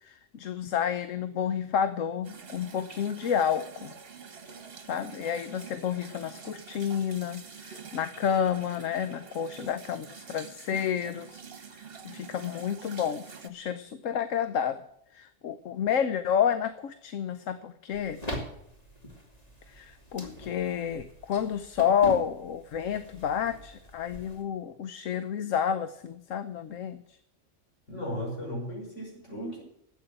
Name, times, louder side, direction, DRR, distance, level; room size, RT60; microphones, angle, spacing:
voice 1, 0.0-3.9 4.9-11.4 11.7-14.9 15.1-18.2 19.7-27.2, left 8 dB, 90° left, 12 dB, 1.2 m, -30 dB
sound 1, 2.2-13.5, right 6 dB, 50° right, 1.5 m, -47 dB
sound 2, 17.9-24.4, left 1 dB, 30° left, 2.8 m, -42 dB
voice 2, 27.9-29.6, equal, 70° left, -1 dB, 5.9 m, -36 dB
13.0 x 8.7 x 8.8 m, 0.75 s
omnidirectional pair, 1.3 m